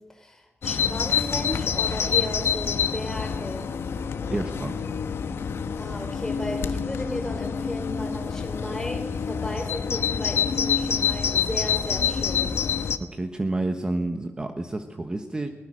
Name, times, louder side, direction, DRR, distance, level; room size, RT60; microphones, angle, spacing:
voice 1, 0.1-3.7 5.8-12.6, left 1 dB, 10° left, 3 dB, 3.8 m, -35 dB
Bird vocalization bird call bird song, 0.6-13.0, left 7 dB, 85° left, 1.1 m, -27 dB
voice 2, 4.3-4.9 13.0-15.5, right 2 dB, 20° right, 7 dB, 1.2 m, -29 dB
23.0 x 20.0 x 6.4 m, 1.1 s
wide cardioid pair, 160°, 4 cm